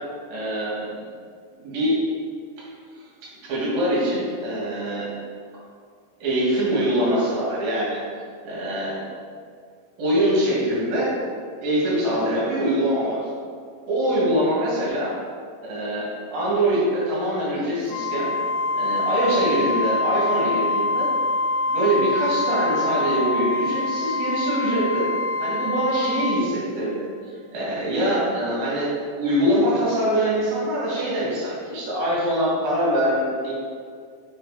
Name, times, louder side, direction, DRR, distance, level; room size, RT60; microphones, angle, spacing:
voice 1, 0.3-0.9 1.6-2.0 3.5-5.1 6.2-8.0 8.4-9.0 10.0-11.2 11.6-13.2 13.9-15.1 15.6-18.3 18.7-21.1 21.7-25.1 25.4-33.5, right 1 dB, 60° right, -7 dB, 3.1 m, -23 dB
Wind instrument woodwind instrument, 17.9-26.5, left 2 dB, 90° left, 3.2 m, -25 dB
6.9 x 4.6 x 4.8 m, 2.1 s
omnidirectional pair, 5.7 m